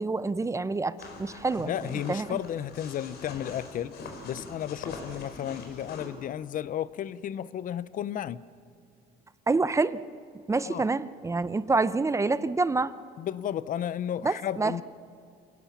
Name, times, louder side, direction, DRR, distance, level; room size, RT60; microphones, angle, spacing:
voice 1, 0.0-1.7 2.1-2.4 9.5-10.0 10.5-12.9 14.2-14.8, right 3 dB, 15° right, 15 dB, 0.6 m, -27 dB
sound 1, 1.0-6.1, left 3 dB, 75° left, 4.3 m, -43 dB
voice 2, 1.6-4.0 4.2-8.4 10.7-10.8 13.2-14.8, left 10 dB, 55° left, 18 dB, 0.6 m, -33 dB
27.0 x 17.5 x 7.2 m, 2.4 s
cardioid pair, 110°, 17 cm